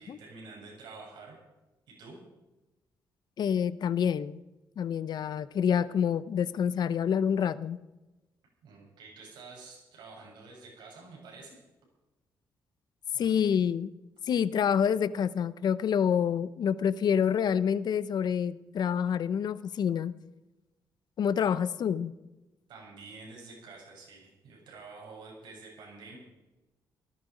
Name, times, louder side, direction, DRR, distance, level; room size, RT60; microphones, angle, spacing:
voice 1, 0.0-1.4 1.9-2.2 8.6-11.6 13.1-13.4 22.7-26.2, right 3 dB, 90° right, -2 dB, 7.4 m, -48 dB
voice 2, 3.4-4.4 4.8-7.8 13.2-13.9 14.3-20.1 21.2-22.1, left 8 dB, 65° left, 16 dB, 0.7 m, -27 dB
18.0 x 13.0 x 5.1 m, 1.0 s
cardioid pair, 85°, 8 cm